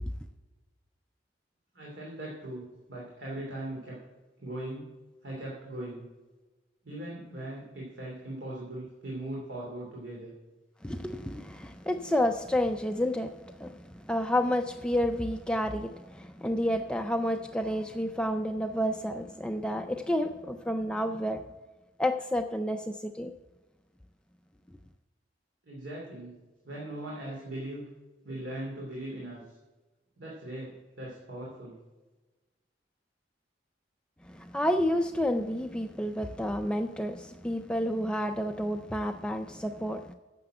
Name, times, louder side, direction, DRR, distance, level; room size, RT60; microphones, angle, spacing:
voice 1, 1.7-4.0 4.4-5.0 5.2-6.0 6.8-10.3 25.6-26.3 26.6-27.9 28.2-29.5 30.2-31.8, right 1 dB, 70° right, -4 dB, 2.8 m, -39 dB
voice 2, 10.8-21.4 22.0-23.3 34.3-40.2, equal, 5° left, 6 dB, 0.4 m, -30 dB
9.8 x 6.8 x 7.6 m, 1.2 s
head